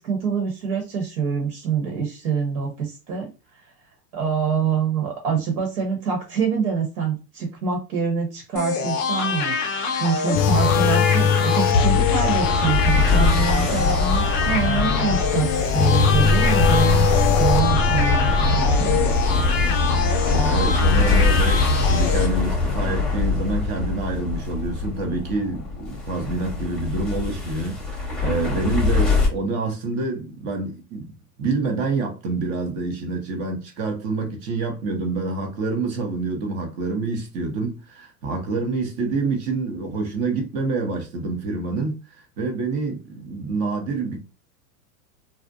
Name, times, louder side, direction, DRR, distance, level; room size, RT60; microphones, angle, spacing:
voice 1, 0.0-3.3 4.1-19.0, right 6 dB, 75° right, 1.2 m, -25 dB
sound 1, 8.6-22.3, left 5 dB, 25° left, 0.4 m, -26 dB
sound 2, 10.3-21.8 22.2-22.4 23.0-23.1, left 7 dB, 90° left, 0.6 m, -23 dB
sound 3, 11.6-29.3, left 3 dB, ahead, 0.7 m, -23 dB
voice 2, 20.3-27.8 28.2-31.1 31.4-44.2, right 3 dB, 35° right, 0.6 m, -27 dB
2.5 x 2.1 x 2.5 m
supercardioid pair, 130°, 48 cm